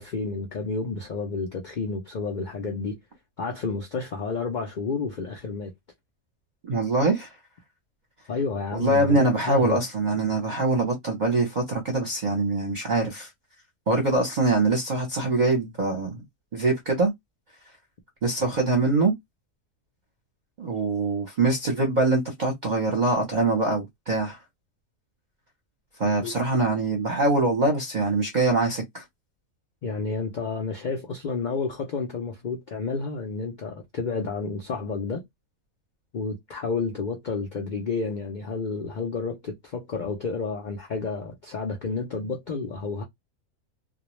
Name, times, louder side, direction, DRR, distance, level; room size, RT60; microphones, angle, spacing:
voice 1, 0.0-3.0 3.4-5.7 8.3-9.8 26.2-26.3 29.8-35.2 36.1-43.0, left 4 dB, 70° left, 0.4 m, -30 dB
voice 2, 6.7-7.3 8.7-13.3 13.9-16.2 16.5-17.1 18.2-19.1 20.6-24.4 26.0-29.0, right 2 dB, 40° right, 0.8 m, -23 dB
2.3 x 2.2 x 3.0 m
omnidirectional pair, 1.5 m